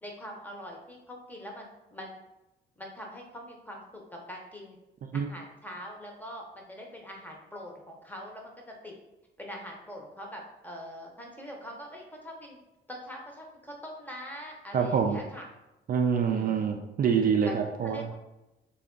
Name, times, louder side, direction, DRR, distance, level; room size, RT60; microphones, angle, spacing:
voice 1, 0.0-2.2 2.8-4.8 5.1-8.9 9.4-12.6 12.9-15.5 16.2-16.7 17.4-18.1, equal, 10° left, 0 dB, 0.8 m, -43 dB
voice 2, 14.7-15.2 15.9-18.1, right 6 dB, 45° right, 3 dB, 0.4 m, -26 dB
3.3 x 2.4 x 3.7 m, 0.96 s
cardioid pair, 90°, 20 cm